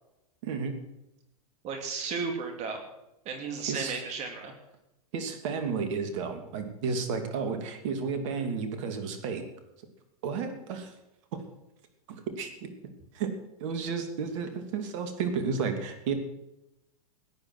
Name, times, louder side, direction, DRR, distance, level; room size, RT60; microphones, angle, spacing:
voice 1, 0.4-0.8 3.6-4.0 5.1-9.4 10.2-10.9 12.1-12.7 13.1-13.3 13.6-16.1, right 5 dB, 55° right, 7 dB, 2.9 m, -32 dB
voice 2, 1.6-2.8 3.2-4.5, right 5 dB, 35° right, 4 dB, 2.8 m, -34 dB
17.0 x 10.5 x 6.2 m, 0.89 s
hypercardioid pair, 110°, 19 cm